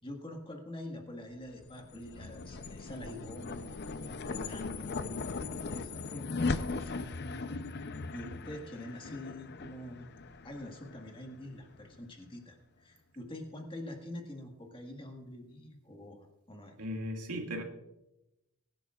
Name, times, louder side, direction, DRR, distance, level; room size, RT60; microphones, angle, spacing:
voice 1, 0.0-3.7 4.1-4.9 5.7-10.1 10.4-16.8, left 1 dB, 25° left, 3 dB, 1.7 m, -45 dB
sound 1, 1.4-12.0, left 3 dB, 50° left, 0.6 m, -39 dB
voice 2, 16.8-17.6, equal, 90° right, 2 dB, 2.0 m, -37 dB
23.0 x 10.5 x 2.4 m, 0.93 s
head